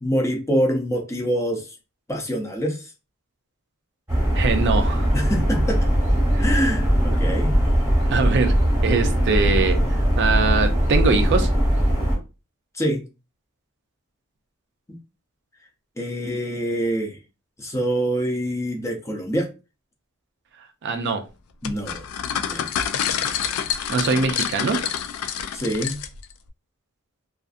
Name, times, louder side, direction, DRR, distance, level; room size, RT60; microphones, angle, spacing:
voice 1, 0.0-1.7 2.1-2.9 5.1-5.8 6.4-7.5 12.7-13.0 16.0-17.2 17.6-19.5 21.6-22.1 22.4-22.7 25.5-26.0, equal, 15° left, 0.5 m, -25 dB
sound 1, 4.1-12.2, equal, 10° right, 1.1 m, -20 dB
voice 2, 4.3-5.1 6.3-6.4 8.1-8.6 8.8-9.8 10.2-11.5 20.8-21.2 23.9-24.8, right 4 dB, 55° right, 0.4 m, -22 dB
sound 2, 21.6-26.3, left 8 dB, 75° left, 0.3 m, -27 dB
2.5 x 2.4 x 2.4 m
head